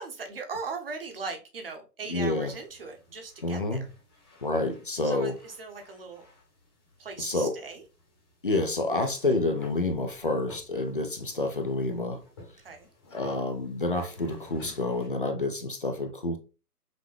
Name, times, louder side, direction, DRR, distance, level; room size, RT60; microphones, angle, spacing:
voice 1, 0.0-3.9 5.0-6.3 7.0-7.8 12.6-12.9, right 4 dB, 35° right, 0.9 m, -39 dB
voice 2, 2.1-2.5 3.4-3.9 4.4-5.4 7.2-7.6 8.4-12.2 13.1-16.4, left 2 dB, 35° left, 0.5 m, -28 dB
sound 1, 2.2-15.1, left 2 dB, 15° left, 1.0 m, -53 dB
6.0 x 2.1 x 3.3 m
hypercardioid pair, 165°, 48 cm